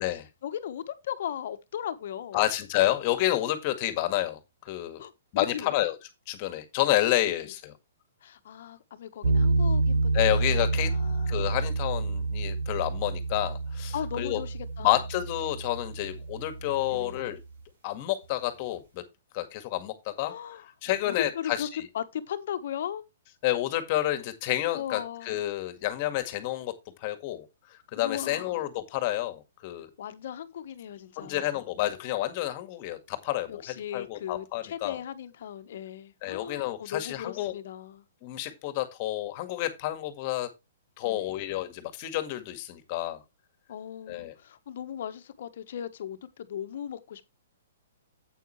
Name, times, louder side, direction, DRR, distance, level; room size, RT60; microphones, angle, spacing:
voice 1, 0.0-2.4 5.0-5.8 7.4-7.5 8.2-11.4 13.9-15.0 16.9-17.2 20.2-20.7 21.0-23.0 24.7-25.4 28.0-28.7 30.0-31.6 33.5-38.0 41.0-41.4 43.7-47.3, left 9 dB, 60° left, 1.3 m, -38 dB
voice 2, 2.3-5.0 5.3-6.0 6.3-7.7 10.1-10.9 11.3-14.4 14.8-17.4 17.8-19.0 19.3-20.3 20.8-21.8 23.4-26.7 27.0-27.5 27.9-29.9 31.2-33.6 33.9-35.0 36.2-37.5 38.2-40.5 41.0-43.2 44.1-44.3, left 15 dB, 40° left, 1.8 m, -29 dB
sound 1, 9.2-17.4, right 3 dB, 70° right, 5.0 m, -28 dB
9.4 x 8.4 x 3.2 m
hypercardioid pair, 145°, 0 cm